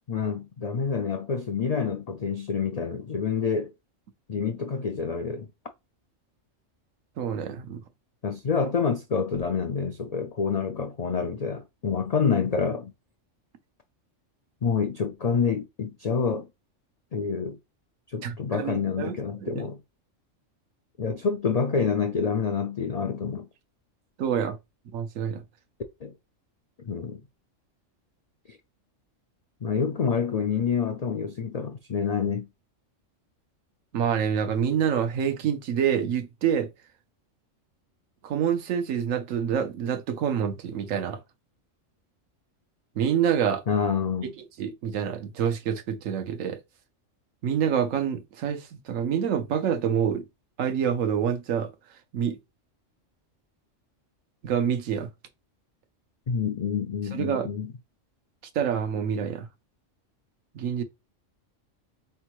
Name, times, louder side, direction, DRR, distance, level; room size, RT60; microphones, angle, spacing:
voice 1, 0.1-3.7 4.3-5.5 8.2-12.9 14.6-16.5 17.1-17.6 18.1-19.8 21.0-23.5 26.0-26.1 26.8-27.2 28.5-28.6 29.6-32.5 43.7-44.3 56.3-57.7, left 6 dB, 90° left, 0.3 m, -27 dB
voice 2, 7.2-7.8 18.2-19.1 19.4-19.7 24.2-24.6 24.9-25.4 33.9-36.7 38.2-41.2 43.0-43.6 44.6-46.6 47.4-50.2 50.6-51.7 52.1-52.4 54.4-55.1 57.1-57.5 58.5-59.5 60.5-60.8, right 8 dB, 90° right, 1.1 m, -27 dB
4.4 x 3.4 x 3.0 m
omnidirectional pair, 1.3 m